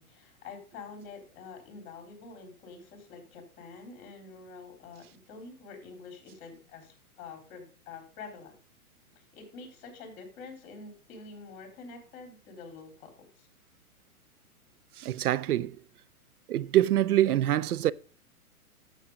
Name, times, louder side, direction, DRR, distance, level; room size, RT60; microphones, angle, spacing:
voice 1, 0.0-8.5 9.2-13.5, left 4 dB, 45° left, 3.8 m, -47 dB
voice 2, 15.0-15.8 16.5-17.9, right 13 dB, 85° right, 0.6 m, -25 dB
9.2 x 7.4 x 5.0 m
hypercardioid pair, 125°, 44 cm